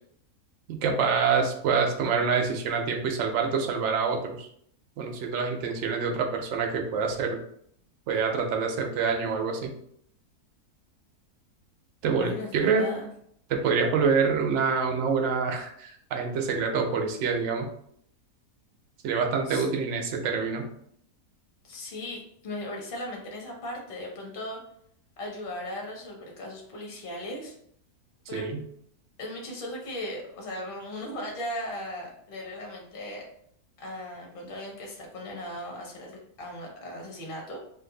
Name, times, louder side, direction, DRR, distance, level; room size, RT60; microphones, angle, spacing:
voice 1, 0.7-4.5 5.0-7.4 8.1-9.7 12.0-12.9 13.5-17.7 19.0-20.6 28.3-28.6, right 5 dB, 70° right, 3 dB, 0.7 m, -26 dB
voice 2, 12.2-13.1 19.5-19.6 21.6-24.6 25.2-27.5 28.3-28.5 29.2-33.2 33.8-37.6, left 1 dB, 40° left, 0 dB, 0.9 m, -37 dB
2.6 x 2.5 x 3.7 m, 0.68 s
omnidirectional pair, 1.7 m